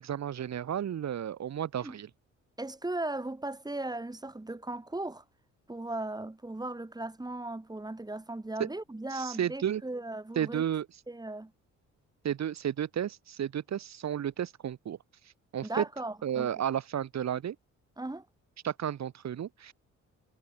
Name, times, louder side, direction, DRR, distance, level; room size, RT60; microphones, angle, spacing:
voice 1, 0.0-2.1 8.6-8.7 9.1-9.8 10.4-10.9 12.2-15.0 15.5-15.8 16.2-17.6 18.6-19.7, right 9 dB, 60° right, 4.4 m, -32 dB
voice 2, 2.6-5.2 5.7-10.6 11.1-11.5 15.6-16.5 18.0-18.3, right 2 dB, 15° right, 5.8 m, -37 dB
cardioid pair, 90°, 30 cm